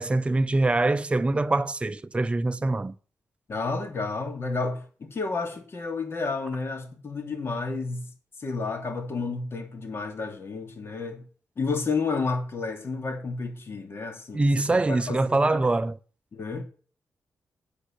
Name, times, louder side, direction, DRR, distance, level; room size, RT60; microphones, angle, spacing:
voice 1, 0.0-2.9 14.3-16.0, right 2 dB, 20° right, 0.6 m, -24 dB
voice 2, 3.5-8.1 8.4-11.2 11.6-14.4 14.7-15.6 16.3-16.6, left 4 dB, 45° left, 2.9 m, -31 dB
8.6 x 8.3 x 6.6 m
wide cardioid pair, 115°, 6 cm